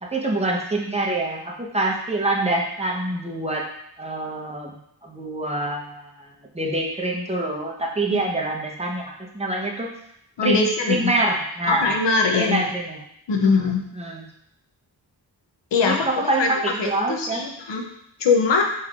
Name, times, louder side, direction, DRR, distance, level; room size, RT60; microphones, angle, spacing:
voice 1, 0.0-3.7 4.0-4.8 5.0-6.3 6.5-9.9 10.4-11.9 12.3-13.0 13.4-14.3 15.8-17.4, right 2 dB, 15° right, -2 dB, 1.0 m, -26 dB
voice 2, 10.4-11.1 11.7-12.6 13.3-13.8 15.7-16.5 16.8-17.9 18.2-18.6, left 4 dB, 85° left, 2 dB, 0.8 m, -21 dB
5.4 x 3.3 x 2.5 m, 0.73 s
cardioid pair, 60°, 42 cm